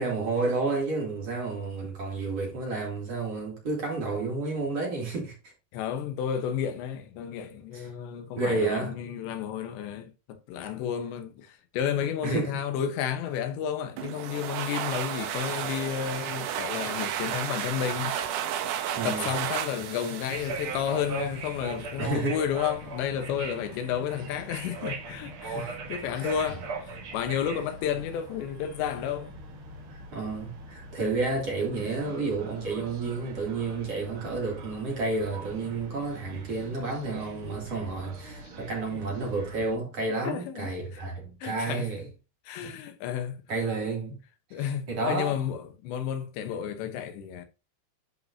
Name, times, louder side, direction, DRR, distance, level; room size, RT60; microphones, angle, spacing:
voice 1, 0.0-5.3 7.7-7.9 8.4-8.9 12.2-12.5 19.0-19.3 22.0-22.4 25.5-25.7 26.1-26.3 29.9-42.0 42.6-42.7 43.5-44.2 44.5-45.4, right 3 dB, 40° right, 3.4 m, -31 dB
voice 2, 5.7-18.5 19.0-29.4 40.3-41.0 41.4-41.9 42.5-43.4 44.5-47.5, left 9 dB, 90° left, 3.4 m, -32 dB
sound 1, 14.0-21.4, right 10 dB, 90° right, 1.7 m, -33 dB
sound 2, 20.3-39.8, right 3 dB, 75° right, 1.2 m, -40 dB
11.5 x 5.3 x 2.8 m
omnidirectional pair, 4.9 m